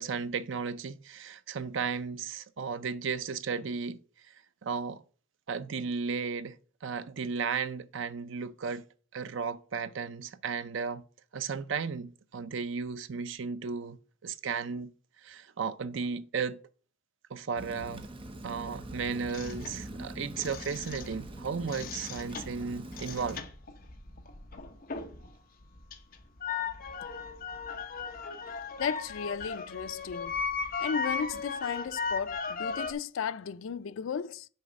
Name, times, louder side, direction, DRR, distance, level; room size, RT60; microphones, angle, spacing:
voice 1, 0.0-4.0 4.6-5.0 5.5-6.6 6.8-8.8 9.1-11.0 11.3-14.9 15.2-16.6 17.3-18.1 18.4-23.5, right 5 dB, 60° right, 0.5 m, -34 dB
Rain, 17.6-23.4, right 1 dB, 25° right, 0.7 m, -43 dB
sound 1, 19.3-21.3 21.6-25.3 25.6-32.9, left 5 dB, 45° left, 0.9 m, -37 dB
voice 2, 28.8-30.4 30.8-34.5, left 6 dB, 70° left, 0.4 m, -35 dB
6.7 x 4.8 x 5.1 m
head